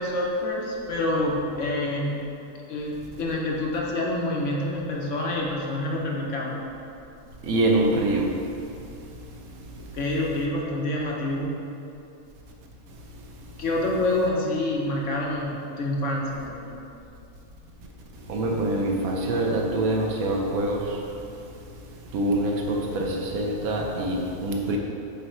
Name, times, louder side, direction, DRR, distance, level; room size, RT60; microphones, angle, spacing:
voice 1, 0.0-2.2 2.7-6.6 9.8-11.6 13.6-16.8, left 1 dB, 60° left, -2 dB, 1.0 m, -27 dB
voice 2, 7.4-8.3 18.3-20.8 22.1-24.8, right 1 dB, 80° right, 0 dB, 1.2 m, -25 dB
5.5 x 3.9 x 4.3 m, 2.7 s
omnidirectional pair, 1.5 m